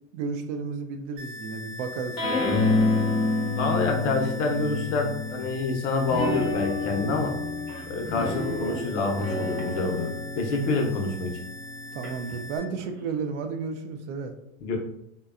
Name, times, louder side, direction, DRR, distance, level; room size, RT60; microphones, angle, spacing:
voice 1, 0.1-3.0 11.9-14.3, right 5 dB, 55° right, 7 dB, 0.5 m, -33 dB
sound 1, 1.2-12.6, left 2 dB, 35° right, 1.0 m, -42 dB
sound 2, 2.2-5.5 6.1-12.9, left 3 dB, 10° left, 0.4 m, -29 dB
voice 2, 3.6-7.3 7.9-11.4 14.6-14.8, left 3 dB, 55° left, 2 dB, 0.7 m, -27 dB
sound 3, 5.3-5.4 6.0-6.1 6.3-10.3 12.0-13.1, right 3 dB, 85° right, 0.8 m, -41 dB
2.6 x 2.2 x 2.3 m, 0.78 s
hypercardioid pair, 125°, 44 cm